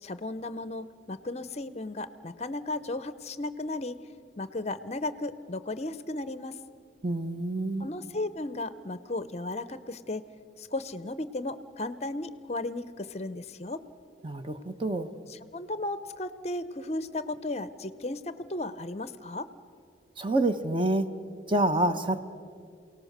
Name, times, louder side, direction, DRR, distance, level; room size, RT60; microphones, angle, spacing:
voice 1, 0.0-4.0 4.4-6.6 7.8-10.2 10.6-13.8 15.3-19.5, left 2 dB, 35° left, 14 dB, 0.6 m, -35 dB
voice 2, 7.0-7.9 14.2-15.1 20.2-21.1 21.5-22.2, right 2 dB, 25° right, 8 dB, 0.8 m, -27 dB
28.5 x 18.5 x 6.6 m, 2.3 s
head